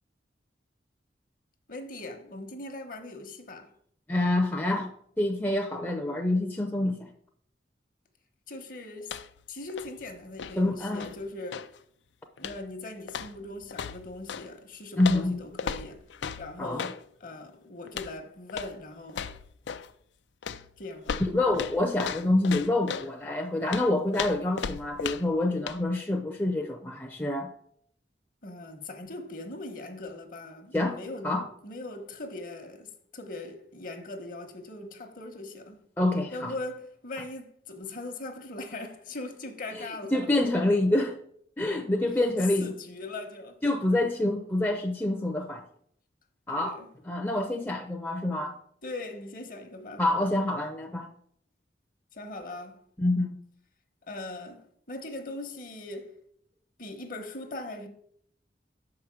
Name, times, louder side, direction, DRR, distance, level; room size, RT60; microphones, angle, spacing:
voice 1, 1.7-3.7 8.5-9.2 9.5-11.7 12.4-16.0 16.4-19.3 20.8-21.2 28.4-31.3 31.6-35.8 36.3-40.2 42.6-43.6 46.5-46.9 48.8-50.0 52.1-52.8 54.1-56.1 56.8-57.9, left 2 dB, 50° left, 1.0 m, -40 dB
voice 2, 4.1-7.1 10.6-11.1 15.0-15.4 16.6-16.9 21.2-27.5 30.7-31.0 31.2-31.4 36.0-36.5 39.7-41.2 41.6-42.8 43.6-45.6 46.5-46.8 47.0-48.6 50.0-51.1 53.0-53.4, left 1 dB, 10° left, 0.5 m, -27 dB
sound 1, 9.0-9.4 9.7-11.8 12.4-12.7 13.1-14.5 15.0-17.0 17.9-18.2 18.5-18.8 19.1-19.9 20.4-23.1 23.7-25.4 25.7-25.8, left 7 dB, 85° left, 0.4 m, -37 dB
6.2 x 4.9 x 6.2 m
head